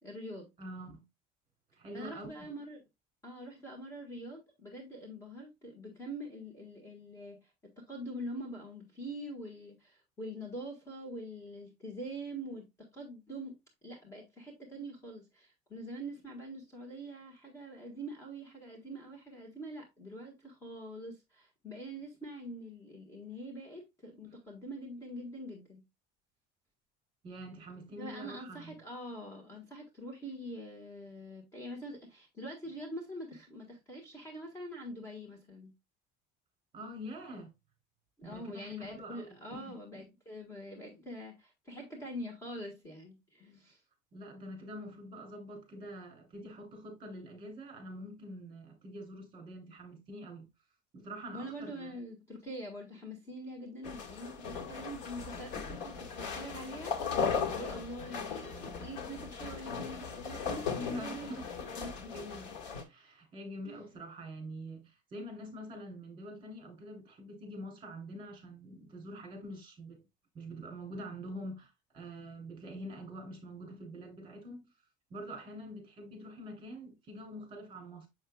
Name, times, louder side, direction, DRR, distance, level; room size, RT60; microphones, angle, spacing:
voice 1, 0.0-0.5 1.9-2.8 3.2-7.5 7.8-13.5 13.8-25.8 28.0-35.7 38.2-43.8 51.3-61.3 61.7-62.1 63.7-63.8, right 1 dB, 15° left, 1.5 m, -44 dB
voice 2, 0.6-1.0 1.8-2.5 27.2-28.8 36.7-37.5 38.2-40.0 44.1-50.5 50.9-52.0 60.6-61.4 62.1-62.5 62.8-70.0 70.3-74.6 75.1-78.1, equal, 25° right, 3.1 m, -45 dB
sound 1, 53.8-62.8, left 6 dB, 65° left, 1.9 m, -37 dB
7.4 x 6.4 x 2.3 m
cardioid pair, 170°, 20 cm